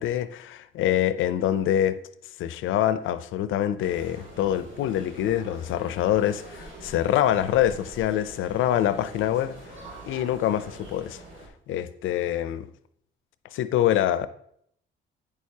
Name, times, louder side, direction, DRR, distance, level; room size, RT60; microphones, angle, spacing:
voice 1, 0.0-2.0 2.4-9.5 10.0-11.2 11.7-12.7 13.5-14.3, left 11 dB, 80° left, 0.5 m, -25 dB
sound 1, 3.8-11.5, right 2 dB, 80° right, 2.3 m, -44 dB
8.6 x 6.5 x 2.8 m
cardioid pair, 90°, 20 cm